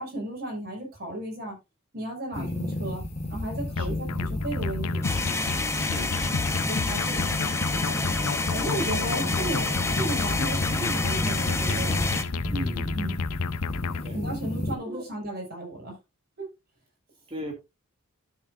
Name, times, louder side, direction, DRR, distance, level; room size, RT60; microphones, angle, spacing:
voice 1, 0.0-1.5 1.9-3.0 3.3-5.1 6.0-6.1 6.6-7.2 8.5-9.7 9.9-12.1 12.9-13.2 14.1-15.9 16.4-16.5, right 1 dB, 45° right, 5.9 m, -34 dB
sound 1, 2.3-14.7, left 1 dB, 30° left, 1.9 m, -32 dB
sound 2, 3.8-14.1, left 5 dB, 75° left, 0.6 m, -32 dB
sound 3, 5.0-12.2, left 3 dB, 10° left, 0.8 m, -29 dB
voice 2, 5.8-6.4 12.5-13.0 14.0-14.2 14.9-15.0 17.3-17.5, equal, 25° right, 2.6 m, -37 dB
12.5 x 7.3 x 2.7 m
head